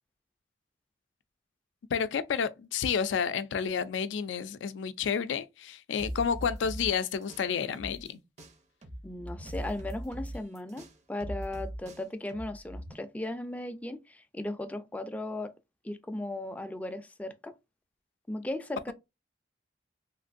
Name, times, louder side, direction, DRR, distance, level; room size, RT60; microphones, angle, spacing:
voice 1, 1.9-8.2, left 6 dB, 85° left, 0.4 m, -30 dB
sound 1, 6.0-8.1 8.4-12.9, equal, 40° right, 0.6 m, -40 dB
voice 2, 9.0-15.5 15.8-17.5 18.3-18.9, left 1 dB, 10° left, 0.3 m, -37 dB
3.1 x 2.5 x 2.4 m
head